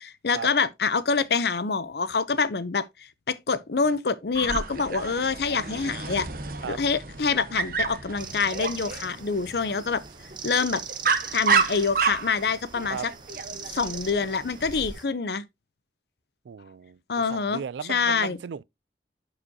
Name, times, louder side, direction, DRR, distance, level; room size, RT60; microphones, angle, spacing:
voice 1, 0.0-2.8 3.3-6.3 6.7-10.0 10.4-10.8 11.3-13.0 13.7-15.4 17.1-17.6 17.9-18.4, left 5 dB, 65° left, 0.7 m, -26 dB
Dog, 4.3-14.9, right 5 dB, 50° right, 1.1 m, -30 dB
sound 1, 8.2-15.0, right 6 dB, 25° right, 0.9 m, -41 dB
voice 2, 16.4-18.6, right 6 dB, 80° right, 0.4 m, -36 dB
11.0 x 4.9 x 2.8 m
head